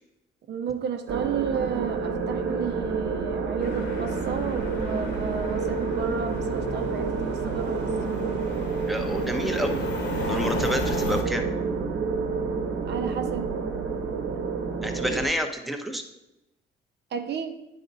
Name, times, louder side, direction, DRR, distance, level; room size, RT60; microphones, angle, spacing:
voice 1, 0.5-8.0 12.8-13.5 17.1-17.6, right 7 dB, 60° right, 6 dB, 0.7 m, -32 dB
sound 1, 1.1-15.3, right 5 dB, 85° right, 1.0 m, -29 dB
sound 2, 3.6-11.2, left 3 dB, 60° left, 1.5 m, -35 dB
voice 2, 8.9-9.8 10.3-11.5 14.8-16.0, equal, ahead, 4 dB, 0.8 m, -29 dB
9.1 x 4.1 x 4.0 m, 0.94 s
cardioid pair, 90°, 20 cm